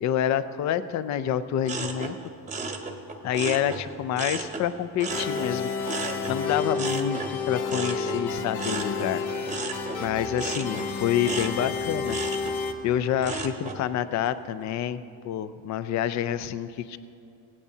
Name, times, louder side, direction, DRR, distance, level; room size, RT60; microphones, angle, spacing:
voice 1, 0.0-2.2 3.2-7.2 7.5-9.2 10.0-12.2 12.5-17.0, left 10 dB, 45° left, 13 dB, 0.4 m, -28 dB
sound 1, 1.6-4.7 5.0-13.8 14.3-14.7, right 3 dB, 20° right, 0.8 m, -35 dB
sound 2, 5.1-12.7, left 5 dB, 65° left, 1.0 m, -31 dB
17.5 x 16.0 x 2.8 m, 2.7 s
cardioid pair, 155°, 40 cm